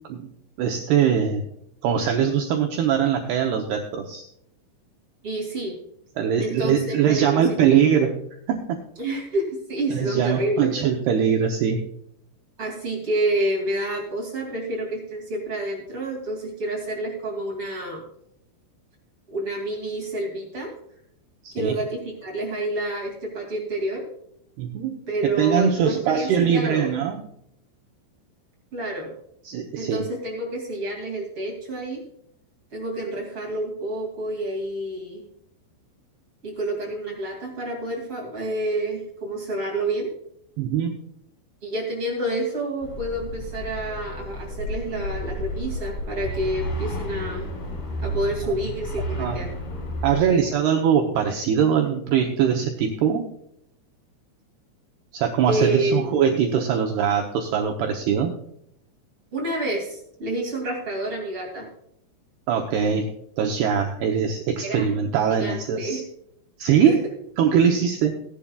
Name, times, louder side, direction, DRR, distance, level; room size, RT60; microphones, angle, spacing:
voice 1, 0.6-1.4 1.8-4.3 6.2-8.1 8.5-8.8 9.9-11.8 21.4-21.8 24.6-27.2 29.4-30.1 40.6-40.9 48.4-48.5 49.2-49.4 50.0-53.3 55.1-58.3 62.5-63.1 63.4-66.0 66.6-67.0 67.4-68.2, right 8 dB, 75° right, 3 dB, 2.5 m, -22 dB
voice 2, 5.2-5.8 6.4-7.7 9.0-10.7 12.6-18.0 19.3-20.7 21.5-24.0 25.1-26.9 28.7-29.1 29.8-32.0 32.7-35.2 36.4-40.1 41.6-47.5 48.0-49.5 55.5-56.1 59.3-61.7 64.6-64.9 65.3-66.0 66.7-67.0, right 1 dB, 35° right, -1 dB, 2.6 m, -28 dB
Morning in Aarhus city center, 42.8-50.2, equal, 80° left, 7.0 m, -31 dB
18.5 x 10.5 x 2.4 m, 0.75 s
omnidirectional pair, 5.7 m